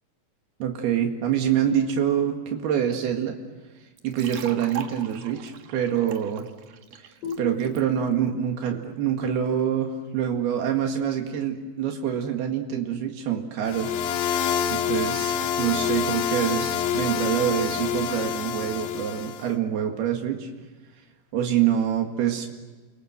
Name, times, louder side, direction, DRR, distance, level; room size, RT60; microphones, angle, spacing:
voice 1, 0.6-3.4 4.0-6.5 6.9-14.0 14.2-14.4 14.7-20.5 21.3-22.5, right 9 dB, 85° right, 3 dB, 3.9 m, -26 dB
sound 1, 4.0-7.8, right 8 dB, 65° right, 2.8 m, -41 dB
sound 2, 7.2-10.6, left 4 dB, 60° left, 6.7 m, -40 dB
sound 3, 13.7-19.5, left 8 dB, 75° left, 2.6 m, -27 dB
30.0 x 25.0 x 7.9 m, 1.3 s
omnidirectional pair, 4.4 m